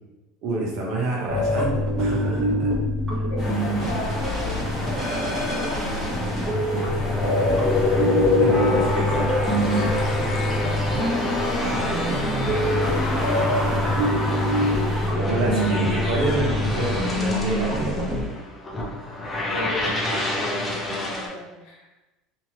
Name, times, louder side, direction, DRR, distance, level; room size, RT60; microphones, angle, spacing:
voice 1, 0.4-2.7 3.1-3.2 7.4-7.6 8.1-9.3 13.4-13.9 15.1-18.1, right 2 dB, 60° right, -2 dB, 0.9 m, -28 dB
sound 1, 1.3-18.2, equal, 15° right, 1.3 m, -25 dB
voice 2, 3.3-7.5 9.2-13.2 19.5-21.9, left 1 dB, 70° left, -2 dB, 1.0 m, -37 dB
sound 2, 3.4-15.1, left 1 dB, 35° left, 1.1 m, -32 dB
sound 3, 7.0-21.3, left 2 dB, 15° left, 0.6 m, -27 dB
2.9 x 2.6 x 2.8 m, 1.1 s
supercardioid pair, 120°, 0 cm